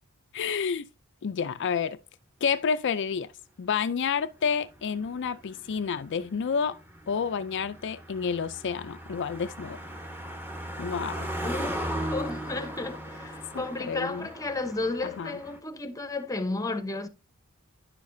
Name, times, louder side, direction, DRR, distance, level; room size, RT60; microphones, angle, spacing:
voice 1, 0.3-0.9 1.2-2.0 2.4-3.3 3.6-6.8 7.1-9.8 10.8-11.3 13.5-14.3 15.2-15.4, left 6 dB, 55° left, 0.4 m, -29 dB
Car passing by, 4.4-15.6, right 1 dB, 10° right, 1.1 m, -37 dB
voice 2, 11.4-17.1, left 3 dB, 15° left, 0.8 m, -33 dB
10.5 x 6.5 x 2.6 m
head